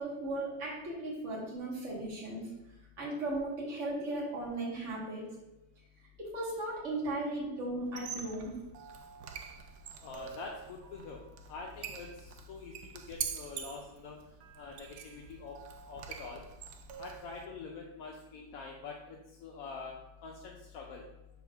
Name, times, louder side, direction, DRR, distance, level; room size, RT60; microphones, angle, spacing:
voice 1, 0.0-2.4 3.0-5.2 6.2-8.6, right 2 dB, 40° right, -5 dB, 2.1 m, -36 dB
Squeak, 7.8-17.5, right 8 dB, 70° right, 1.2 m, -45 dB
voice 2, 10.0-11.2 11.5-12.7 13.1-14.2 14.6-15.6 15.9-16.4 17.0-19.9 20.2-21.0, left 4 dB, 65° left, 0 dB, 0.9 m, -45 dB
4.6 x 4.1 x 5.8 m, 0.96 s
omnidirectional pair, 2.0 m